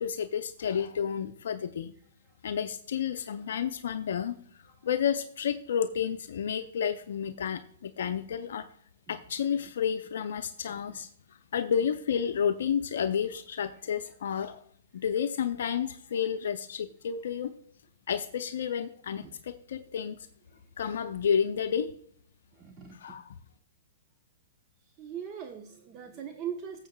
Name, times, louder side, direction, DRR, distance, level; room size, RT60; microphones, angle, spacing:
voice 1, 0.0-1.9 2.4-4.3 4.8-8.7 9.1-11.1 11.5-14.6 14.9-17.5 18.1-20.2 20.8-21.9 23.0-23.3, left 8 dB, 70° left, 8 dB, 0.5 m, -31 dB
voice 2, 10.7-11.0 13.7-13.8 19.2-19.3 20.5-20.7 22.5-23.2 24.9-26.9, right 8 dB, 30° right, 4 dB, 1.0 m, -42 dB
15.0 x 7.3 x 2.2 m, 0.63 s
hypercardioid pair, 120°, 0 cm